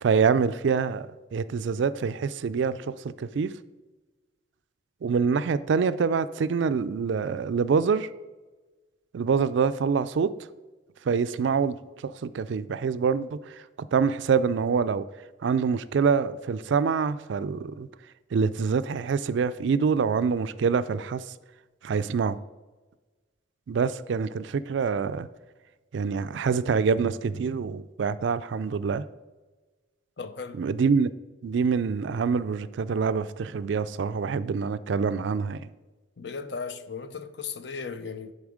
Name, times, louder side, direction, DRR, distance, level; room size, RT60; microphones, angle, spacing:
voice 1, 0.0-3.5 5.0-8.1 9.1-10.3 11.1-11.8 12.0-13.4 13.8-15.0 15.4-17.9 18.3-21.2 21.8-22.4 23.7-25.3 25.9-29.0 30.6-31.1 31.4-35.6, right 5 dB, 65° right, 0.3 m, -25 dB
voice 2, 30.2-30.7 36.2-38.3, left 5 dB, 60° left, 0.6 m, -36 dB
10.5 x 4.0 x 4.9 m
head